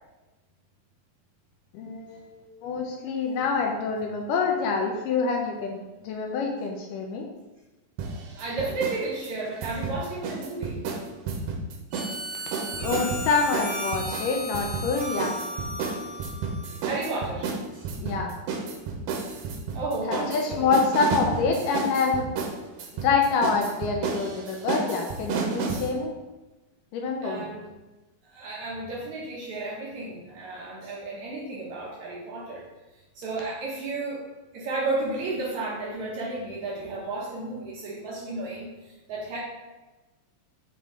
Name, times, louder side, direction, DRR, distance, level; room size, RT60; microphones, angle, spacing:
voice 1, 1.7-7.3 12.7-15.4 18.0-18.3 20.1-22.3 23.0-26.1 26.9-27.5, left 4 dB, 80° left, 1 dB, 2.1 m, -26 dB
sound 1, 8.0-9.0 9.2-12.2 12.5-25.9, right 4 dB, 85° right, 2.6 m, -31 dB
voice 2, 8.4-10.8 12.3-12.8 16.8-17.9 19.3-19.4 19.7-20.8 27.2-27.6 28.2-32.7 33.2-34.3 34.5-39.4, right 2 dB, 70° right, -4 dB, 1.9 m, -33 dB
Harmonica, 11.9-17.1, equal, 50° right, 2.9 m, -35 dB
7.2 x 3.6 x 3.7 m, 1.1 s
omnidirectional pair, 4.1 m